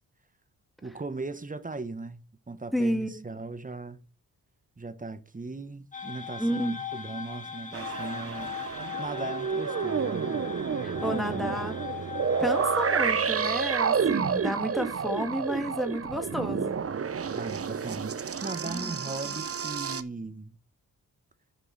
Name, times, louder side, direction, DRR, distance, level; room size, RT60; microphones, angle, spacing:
voice 1, 0.8-4.0 4.8-8.5 9.0-10.3 11.0-11.7 17.3-20.5, right 3 dB, 20° right, 1.1 m, -38 dB
voice 2, 2.7-3.2 6.4-6.7 10.8-11.8 12.4-16.8 18.7-19.0 19.2-19.4, equal, ahead, 2.0 m, -31 dB
sound 1, 5.9-13.1, left 7 dB, 20° left, 2.2 m, -39 dB
sound 2, 7.7-20.0, right 6 dB, 35° right, 0.7 m, -30 dB
10.0 x 5.3 x 4.0 m
cardioid pair, 50°, 39 cm